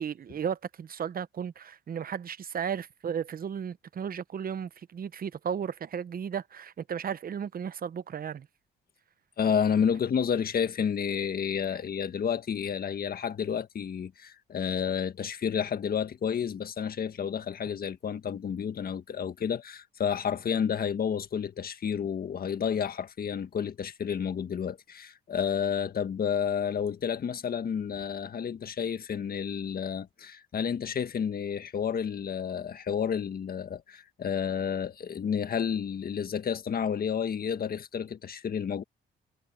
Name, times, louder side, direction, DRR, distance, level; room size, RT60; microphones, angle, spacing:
voice 1, 0.0-8.5, right 7 dB, 45° right, 0.9 m, -34 dB
voice 2, 9.4-38.8, left 7 dB, 50° left, 1.7 m, -30 dB
cardioid pair, 90°, 20 cm